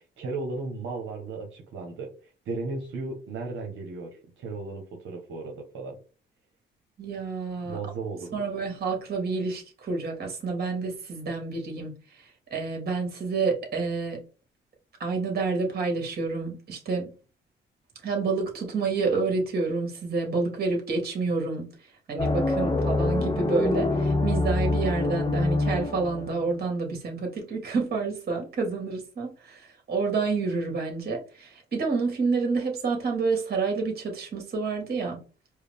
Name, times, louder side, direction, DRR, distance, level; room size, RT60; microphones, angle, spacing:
voice 1, 0.0-6.0 7.6-8.3, right 3 dB, 75° right, 1.0 m, -35 dB
voice 2, 7.0-7.8 8.3-11.9 12.5-14.2 15.0-17.1 18.0-21.7 22.1-35.2, right 4 dB, 50° right, 1.8 m, -28 dB
sound 1, 22.2-26.5, left 2 dB, 20° left, 0.9 m, -25 dB
4.7 x 2.1 x 3.4 m
cardioid pair, 90°, 20 cm